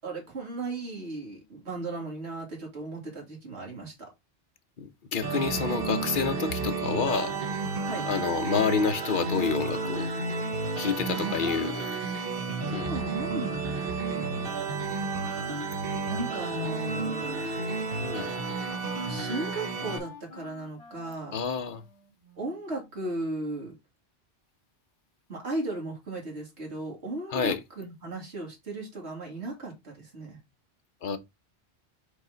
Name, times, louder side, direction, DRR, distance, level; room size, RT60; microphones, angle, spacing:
voice 1, 0.0-4.1 7.8-8.1 10.6-12.3 12.7-14.4 16.1-17.9 19.1-21.4 22.4-23.7 25.3-30.4, right 2 dB, 80° right, 2.8 m, -36 dB
voice 2, 4.8-7.4 8.0-10.1 10.8-11.7 12.7-12.9 18.0-18.3 21.3-21.8 27.3-27.6 31.0-31.2, left 6 dB, 50° left, 1.0 m, -28 dB
sound 1, 5.2-20.0, right 3 dB, 60° right, 1.2 m, -31 dB
Wind instrument woodwind instrument, 16.9-23.1, left 5 dB, 65° left, 1.8 m, -49 dB
5.3 x 4.6 x 3.9 m
omnidirectional pair, 1.1 m